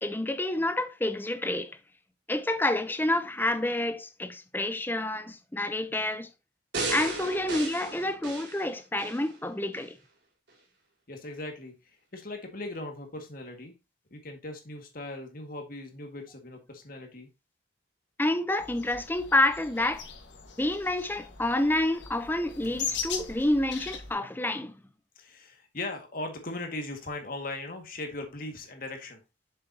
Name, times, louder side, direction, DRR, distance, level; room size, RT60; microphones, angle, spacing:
voice 1, 0.0-1.7 2.3-6.3 6.9-10.0 18.2-20.0 20.6-24.7, left 1 dB, 10° left, 0.7 m, -28 dB
sound 1, 6.7-9.2 9.7-9.8, right 3 dB, 70° right, 3.7 m, -35 dB
voice 2, 11.1-13.7 14.1-17.3 22.7-22.9 25.2-29.2, left 2 dB, 50° left, 1.9 m, -39 dB
sound 2, 18.6-24.1, left 6 dB, 80° left, 1.6 m, -39 dB
7.4 x 7.2 x 2.8 m
head